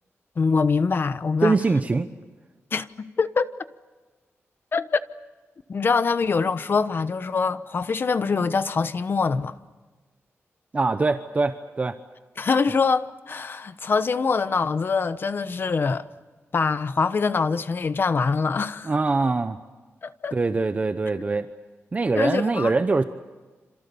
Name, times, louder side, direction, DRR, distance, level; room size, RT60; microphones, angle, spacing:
voice 1, 0.4-1.6 2.7-3.5 4.7-5.0 5.7-9.5 12.4-16.0 16.5-18.9 20.0-20.4 22.1-22.7, left 5 dB, 45° left, 1.0 m, -24 dB
voice 2, 1.4-2.1 10.7-12.0 18.8-19.6 20.3-21.5 21.9-23.0, right 3 dB, 30° right, 0.9 m, -23 dB
28.0 x 27.0 x 7.0 m
wide cardioid pair, 135°, 5 cm